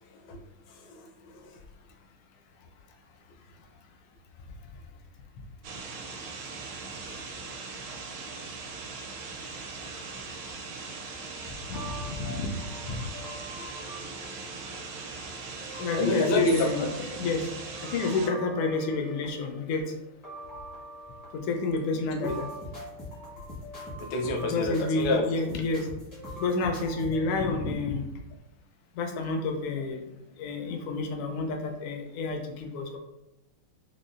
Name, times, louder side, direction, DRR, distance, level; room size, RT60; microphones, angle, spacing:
voice 1, 0.7-1.6 13.6-13.7 15.9-16.7 22.2-22.3 24.0-25.4, left 1 dB, 70° left, 0 dB, 1.1 m, -29 dB
sound 1, 5.6-18.3, right 4 dB, 80° right, 1.0 m, -40 dB
sound 2, 11.4-27.2, equal, 30° left, 0.4 m, -43 dB
voice 2, 11.7-13.0 15.8-16.9 17.2-17.5 17.8-19.9 21.3-22.5 24.4-25.9 26.4-28.1 28.9-30.1 30.4-33.0, left 3 dB, 85° left, 3 dB, 1.5 m, -29 dB
5.2 x 2.0 x 2.4 m, 0.90 s
omnidirectional pair, 2.4 m